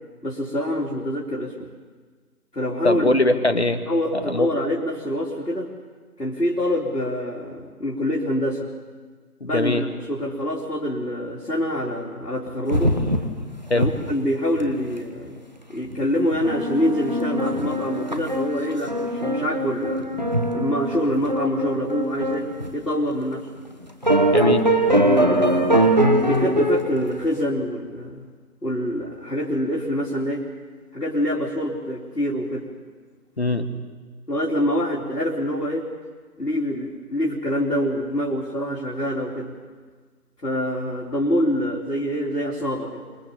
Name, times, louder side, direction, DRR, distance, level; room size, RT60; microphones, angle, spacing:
voice 1, 0.2-1.7 2.5-3.1 3.9-5.7 6.2-8.7 9.5-12.9 13.7-15.4 15.7-20.3 20.5-22.5 22.7-23.5 24.9-28.2 28.6-30.5 30.9-32.7 34.3-35.9 36.4-39.5 40.4-43.0, equal, 85° left, -4 dB, 3.9 m, -25 dB
voice 2, 2.8-3.8 4.3-4.5 9.4-9.9 13.7-13.9 24.3-24.7 33.4-33.7, left 2 dB, 45° left, 8 dB, 1.6 m, -21 dB
sound 1, 12.7-13.4 13.7-13.9 14.2-14.3 14.6-14.9 15.9-16.0 16.3-22.7 23.3-23.4 24.0-26.9, right 1 dB, 30° right, 1.2 m, -22 dB
26.0 x 21.0 x 7.3 m, 1.5 s
figure-of-eight pair, 170°, 47 cm